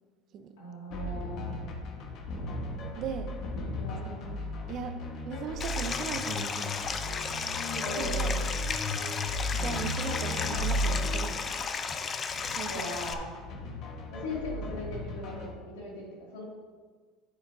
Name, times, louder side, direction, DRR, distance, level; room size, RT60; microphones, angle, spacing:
voice 1, 0.6-1.5 3.7-4.5 7.8-8.3 12.7-13.3 14.1-16.4, left 1 dB, 90° left, -3 dB, 2.4 m, -39 dB
sound 1, 0.9-15.5, left 1 dB, 60° left, 1.3 m, -35 dB
voice 2, 3.0-3.3 4.1-4.4 4.7-5.0 5.3-7.0 7.7-8.4 9.5-11.7 12.5-12.8, right 6 dB, 55° right, 8 dB, 0.7 m, -38 dB
Stream, 5.6-13.1, left 5 dB, 35° left, 0.6 m, -34 dB
9.8 x 7.9 x 2.7 m, 1.5 s
supercardioid pair, 95°, 0 cm